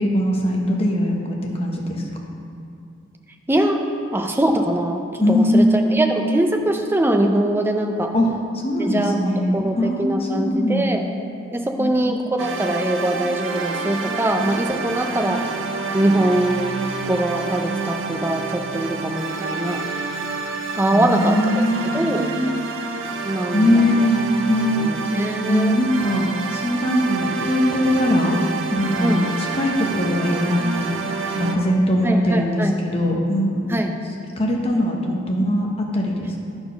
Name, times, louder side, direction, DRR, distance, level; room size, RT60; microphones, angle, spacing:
voice 1, 0.0-2.0 5.2-6.1 8.1-8.3 8.5-10.9 11.8-12.2 20.9-22.5 23.5-24.2 24.5-24.9 25.5-28.4 28.7-31.0 31.3-33.7 34.4-36.4, left 1 dB, 30° left, 0 dB, 0.9 m, -21 dB
voice 2, 3.5-3.8 4.1-8.1 8.8-11.1 11.5-15.4 15.9-16.8 17.1-19.8 20.7-21.6 21.9-22.3 23.3-23.7 24.8-25.8 29.0-29.2 32.0-32.7 33.7-33.9, right 1 dB, 10° right, 3 dB, 0.5 m, -22 dB
sound 1, 12.4-31.5, right 4 dB, 75° right, 0.7 m, -28 dB
10.5 x 4.4 x 5.7 m, 2.5 s
head